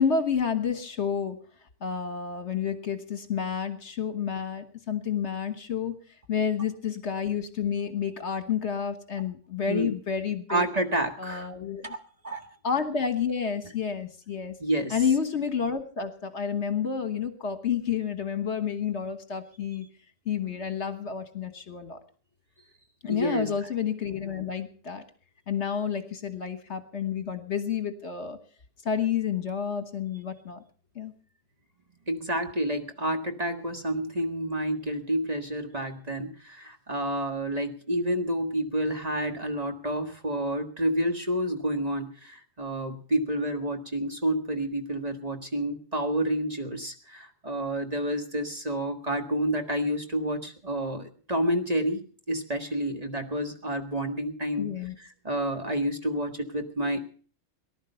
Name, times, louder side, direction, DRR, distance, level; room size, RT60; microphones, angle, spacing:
voice 1, 0.0-1.4 1.8-6.0 6.3-10.7 11.2-11.9 12.6-14.6 14.9-19.9 20.2-22.0 23.0-25.0 25.5-28.4 28.8-30.6 30.9-31.1 54.6-54.9, left 7 dB, 60° left, 9 dB, 1.6 m, -30 dB
voice 2, 10.5-11.5 11.8-12.5 14.6-15.0 23.0-23.5 32.1-52.0 52.3-54.7 55.0-57.0, right 1 dB, 30° right, 5 dB, 1.7 m, -29 dB
19.0 x 11.5 x 5.6 m, 0.43 s
omnidirectional pair, 1.4 m